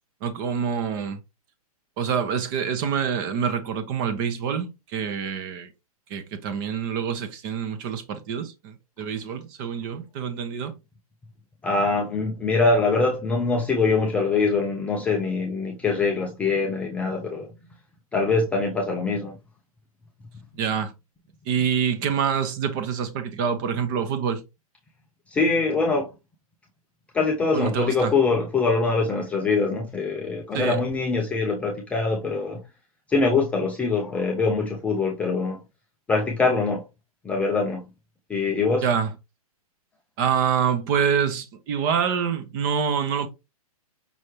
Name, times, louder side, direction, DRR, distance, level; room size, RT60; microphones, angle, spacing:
voice 1, 0.2-1.2 2.0-5.7 6.1-10.7 20.6-20.9 21.5-24.4 27.5-28.1 30.5-30.8 38.8-39.1 40.2-43.3, right 7 dB, 35° right, 0.9 m, -26 dB
voice 2, 11.6-17.5 18.1-19.3 21.6-21.7 25.3-26.1 27.1-32.6 33.1-35.6 36.1-36.9 37.2-37.9 38.3-38.9, left 4 dB, 5° left, 0.4 m, -23 dB
5.5 x 3.1 x 3.1 m
hypercardioid pair, 145°, 19 cm